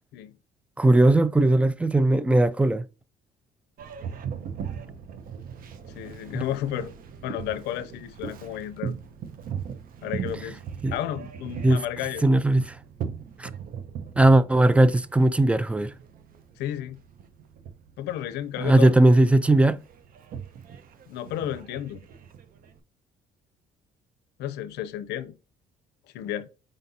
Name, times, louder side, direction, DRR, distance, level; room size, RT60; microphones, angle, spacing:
voice 1, 0.8-2.8 6.3-6.4 10.8-10.9 11.6-11.8 12.2-12.8 13.4-13.5 14.2-15.9 18.6-19.8, right 2 dB, 5° right, 0.3 m, -19 dB
Boat Water vehicle, 3.8-22.8, right 7 dB, 55° right, 0.8 m, -39 dB
voice 2, 5.9-6.9 7.2-8.9 10.0-10.6 10.9-12.2 16.6-17.0 18.0-19.1 21.1-22.0 24.4-25.4 26.1-26.5, left 12 dB, 85° left, 0.5 m, -32 dB
5.1 x 3.9 x 2.7 m
cardioid pair, 110°, 17 cm